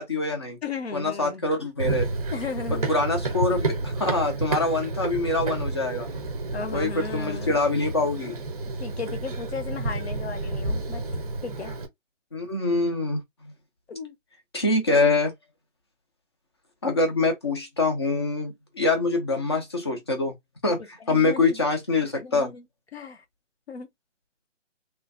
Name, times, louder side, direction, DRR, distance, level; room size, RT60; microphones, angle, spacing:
voice 1, 0.0-0.6 0.9-2.1 2.7-6.1 6.7-8.4 12.3-13.5 14.5-15.3 16.8-20.3 20.6-22.5, left 3 dB, 20° left, 0.5 m, -25 dB
voice 2, 0.6-1.4 2.3-2.9 6.5-7.6 8.8-11.0 11.4-11.7 13.9-14.2 21.1-21.6 22.2-22.6 22.9-23.2 23.7-23.9, left 5 dB, 55° left, 0.8 m, -35 dB
Run, 1.8-11.9, right 3 dB, 30° right, 0.6 m, -30 dB
3.3 x 2.5 x 2.5 m
figure-of-eight pair, 155°, 38 cm